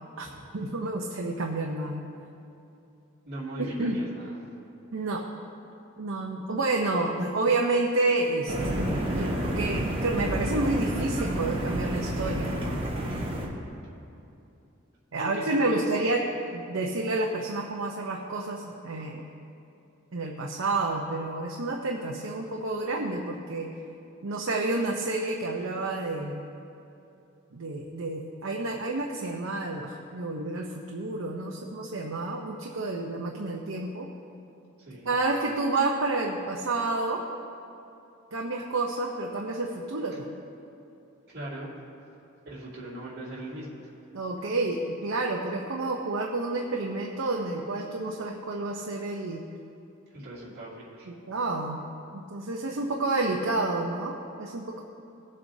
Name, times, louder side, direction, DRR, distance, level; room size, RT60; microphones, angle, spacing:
voice 1, 0.5-2.0 3.8-4.0 4.9-5.3 6.0-12.8 15.1-16.2 16.5-19.2 20.1-23.7 24.2-26.4 27.5-34.1 35.0-37.2 38.3-40.4 44.1-49.4 51.1-51.8 52.1-54.8, right 2 dB, 75° right, 0 dB, 0.8 m, -29 dB
voice 2, 3.2-4.5 15.2-15.8 34.8-35.1 41.3-41.7 42.4-43.9 50.1-51.1, right 1 dB, 50° right, -7 dB, 2.5 m, -39 dB
sound 1, 8.5-13.5, right 1 dB, 25° right, 1.3 m, -29 dB
18.5 x 7.5 x 2.7 m, 2.8 s
head